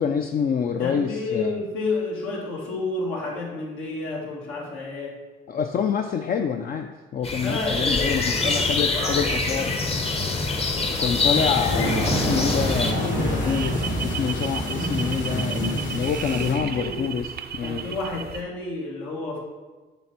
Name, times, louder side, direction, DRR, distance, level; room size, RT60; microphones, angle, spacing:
voice 1, 0.0-1.6 5.5-9.8 11.0-17.9, left 7 dB, 45° left, 5 dB, 0.4 m, -27 dB
voice 2, 0.8-5.2 7.4-9.3 16.2-17.1 17.6-19.4, left 3 dB, 85° left, -3 dB, 1.8 m, -31 dB
sound 1, 7.2-12.9, left 3 dB, 30° left, 0.8 m, -25 dB
sound 2, 11.1-16.5, equal, 70° left, 2.2 m, -27 dB
sound 3, 12.5-18.4, right 8 dB, 50° right, 0.4 m, -35 dB
6.9 x 3.4 x 5.8 m, 1.3 s
cardioid pair, 90°, 20 cm